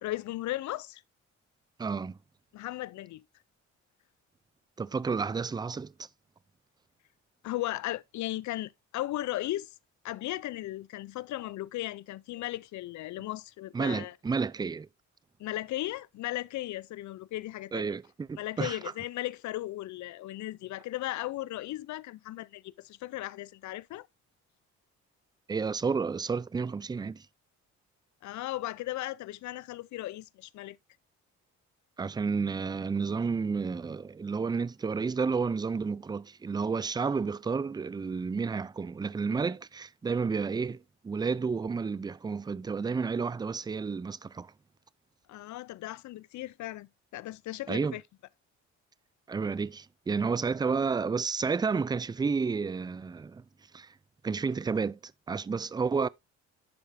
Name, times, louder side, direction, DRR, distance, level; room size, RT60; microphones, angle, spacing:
voice 1, 0.0-1.0 2.5-3.2 7.4-9.7 10.0-14.1 15.4-17.9 18.4-24.1 28.2-30.8 45.3-48.0, left 16 dB, 70° left, 0.5 m, -36 dB
voice 2, 1.8-2.2 4.8-5.9 13.7-14.9 17.7-18.8 25.5-27.2 32.0-44.5 47.7-48.0 49.3-53.4 53.7-53.9 54.2-56.1, right 5 dB, 15° right, 0.3 m, -31 dB
11.0 x 4.7 x 2.6 m
cardioid pair, 90°, 30 cm